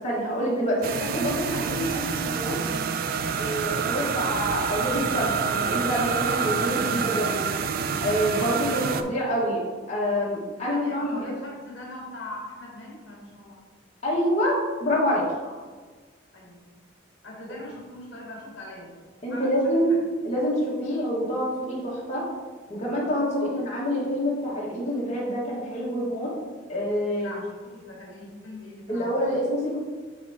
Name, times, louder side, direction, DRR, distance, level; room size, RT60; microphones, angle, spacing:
voice 1, 0.0-2.6 3.3-7.5 8.0-11.3 14.0-15.2 19.2-19.9 20.2-22.3 22.7-26.3 26.7-27.3 28.9-29.8, equal, 35° left, -6 dB, 1.6 m, -27 dB
sound 1, 0.8-9.0, right 6 dB, 45° right, 0.3 m, -27 dB
voice 2, 8.3-8.8 10.7-13.6 15.4-15.7 16.3-16.6 17.2-18.9 19.3-20.0 23.3-23.6 27.2-29.1, left 1 dB, 65° left, -3 dB, 1.3 m, -41 dB
10.0 x 3.5 x 2.9 m, 1.4 s
head